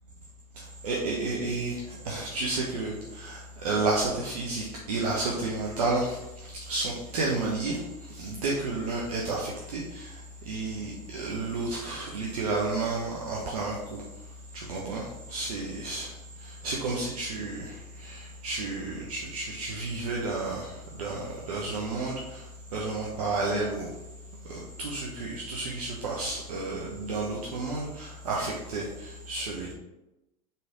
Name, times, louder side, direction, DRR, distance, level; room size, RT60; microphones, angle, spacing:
voice 1, 0.8-1.8 2.0-6.2 6.5-7.8 8.1-10.1 10.5-13.8 14.5-16.1 16.6-17.7 18.0-20.7 21.0-22.4 22.7-23.9 24.5-29.7, right 3 dB, 70° right, -3 dB, 0.8 m, -31 dB
4.1 x 3.3 x 3.7 m, 0.95 s
figure-of-eight pair, 80°, 20 cm